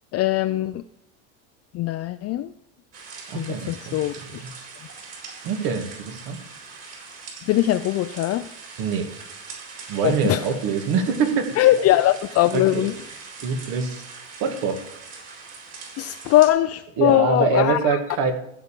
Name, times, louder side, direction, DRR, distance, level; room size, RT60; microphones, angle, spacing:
voice 1, 0.1-0.8 1.7-2.5 3.3-4.4 7.5-8.5 10.0-10.4 11.6-12.9 16.0-17.8, left 14 dB, 40° left, 9 dB, 0.5 m, -21 dB
sound 1, 2.9-16.5, right 4 dB, 40° right, 4.4 m, -41 dB
voice 2, 3.3-4.5 5.4-6.4 8.8-9.1 9.9-11.5 12.5-12.9 13.4-14.1 14.4-14.8 17.0-18.3, right 5 dB, 70° right, 5 dB, 2.3 m, -24 dB
15.0 x 5.1 x 7.5 m, 0.80 s
cardioid pair, 125°, 37 cm